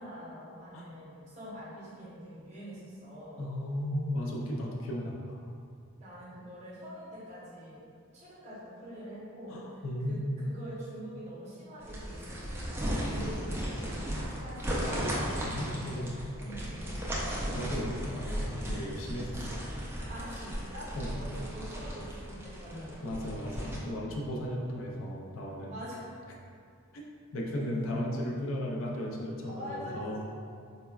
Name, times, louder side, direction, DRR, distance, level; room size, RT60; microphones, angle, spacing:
voice 1, 0.0-3.4 6.0-7.8 8.1-9.6 10.1-14.6 16.4-16.8 18.0-18.1 18.6-18.8 20.1-23.3 25.7-26.1 29.5-30.4, equal, 30° right, -9 dB, 0.8 m, -45 dB
voice 2, 3.4-5.4 9.5-10.2 15.4-16.1 17.5-19.6 21.0-21.1 22.7-25.7 26.9-27.0 27.3-30.3, left 1 dB, 65° left, -2 dB, 0.4 m, -35 dB
sound 1, 11.8-23.8, equal, 10° right, 0.3 m, -36 dB
4.1 x 2.2 x 2.2 m, 2.3 s
head